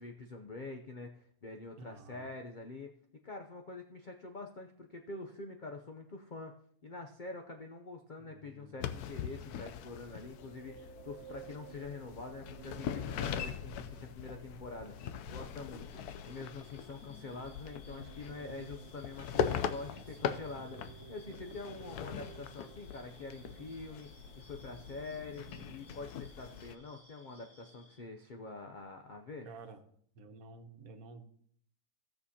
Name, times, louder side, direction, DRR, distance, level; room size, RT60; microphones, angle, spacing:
voice 1, 0.0-2.9 3.2-6.6 6.8-15.9 16.3-24.1 24.4-29.5, left 3 dB, 55° left, 3 dB, 0.5 m, -46 dB
voice 2, 1.8-2.3 8.2-8.9 19.8-20.4 29.4-29.8 30.1-31.2, right 3 dB, 65° right, 6 dB, 1.3 m, -52 dB
sound 1, 8.8-26.8, left 8 dB, 80° left, 1.1 m, -41 dB
sound 2, 10.0-26.0, right 8 dB, 85° right, 1.3 m, -55 dB
sound 3, 15.3-28.0, left 1 dB, 30° left, 5.3 m, -61 dB
16.5 x 6.7 x 2.8 m, 0.64 s
omnidirectional pair, 1.7 m